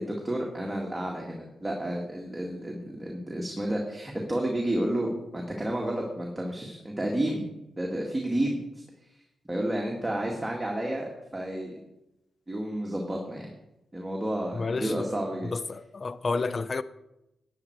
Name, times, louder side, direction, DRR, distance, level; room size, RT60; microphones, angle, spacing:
voice 1, 0.0-7.5 7.8-8.6 9.5-11.1 11.3-11.8 12.5-13.5 13.9-15.5, right 1 dB, 15° right, 2.0 m, -31 dB
voice 2, 14.5-15.1 15.4-16.8, left 3 dB, 40° left, 0.5 m, -30 dB
11.5 x 9.5 x 4.6 m
cardioid pair, 70°, 0 cm